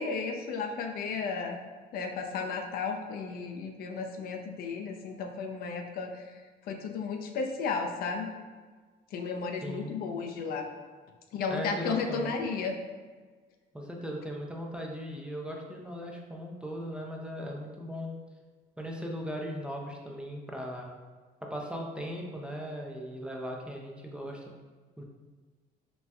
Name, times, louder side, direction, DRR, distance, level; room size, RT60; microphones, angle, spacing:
voice 1, 0.0-1.6 1.9-6.3 6.7-8.3 9.1-10.7 11.3-12.8, left 5 dB, 60° left, 4 dB, 0.4 m, -34 dB
voice 2, 9.6-9.9 11.5-12.3 13.7-18.1 18.8-21.0 21.4-24.5 25.0-25.1, equal, 5° right, -1 dB, 0.3 m, -38 dB
4.1 x 2.2 x 2.2 m, 1.4 s
cardioid pair, 110°, 17 cm